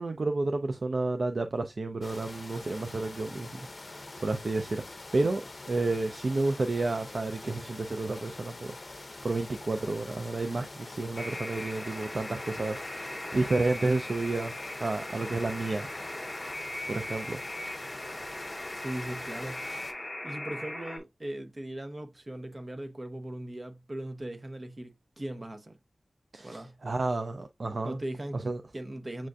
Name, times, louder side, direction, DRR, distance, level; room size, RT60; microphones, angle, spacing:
voice 1, 0.0-4.8 5.1-5.4 5.7-14.5 14.8-15.9 16.4-16.5 16.8-17.9 26.3-28.0 28.4-28.6, right 2 dB, 65° right, 0.4 m, -31 dB
sound 1, 2.0-19.9, left 2 dB, 50° left, 0.6 m, -45 dB
Alarm, 11.2-21.0, left 1 dB, 15° left, 1.1 m, -39 dB
voice 2, 18.7-25.8 26.4-26.8 27.8-28.4 28.7-29.3, right 1 dB, 40° right, 0.8 m, -39 dB
7.4 x 2.5 x 2.2 m
wide cardioid pair, 75°, 0 cm